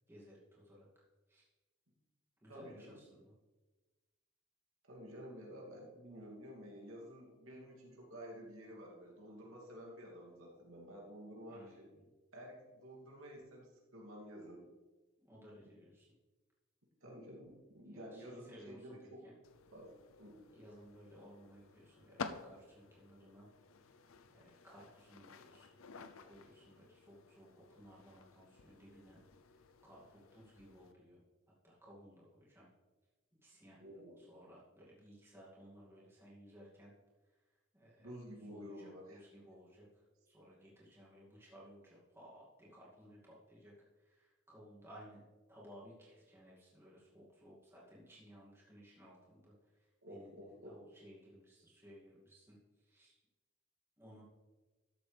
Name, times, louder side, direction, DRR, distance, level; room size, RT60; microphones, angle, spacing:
voice 1, 0.1-0.9 1.3-1.5 2.4-3.3 11.5-12.1 15.2-16.1 17.9-19.0 19.2-19.3 20.5-23.5 23.9-24.0 24.3-25.8 26.2-29.2 29.5-31.2 31.6-32.7 33.4-33.8 34.2-36.9 37.7-38.1 38.5-39.9 40.3-43.7 44.0-50.3 50.6-53.1 54.0-54.2, equal, 10° right, -7 dB, 2.4 m, -58 dB
voice 2, 2.4-3.0 4.9-11.9 12.3-14.6 17.0-19.2 19.7-19.9 20.2-20.4 33.8-34.2 38.0-39.3 50.0-50.8, equal, 80° right, -2 dB, 2.6 m, -51 dB
sound 1, 19.4-30.9, left 5 dB, 75° left, 0.6 m, -53 dB
13.0 x 7.7 x 3.4 m, 1.2 s
head